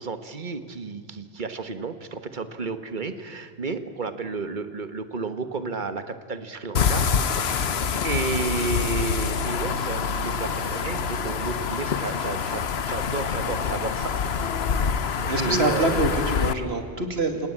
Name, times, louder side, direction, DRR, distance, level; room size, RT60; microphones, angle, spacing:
voice 1, 0.0-7.7 8.0-14.2 15.4-16.0, right 4 dB, 50° right, 10 dB, 1.5 m, -32 dB
sound 1, 6.8-16.5, left 6 dB, 80° left, 1.2 m, -26 dB
voice 2, 15.3-17.5, right 2 dB, 80° right, 6 dB, 2.7 m, -25 dB
28.0 x 18.0 x 8.7 m, 2.4 s
omnidirectional pair, 1.0 m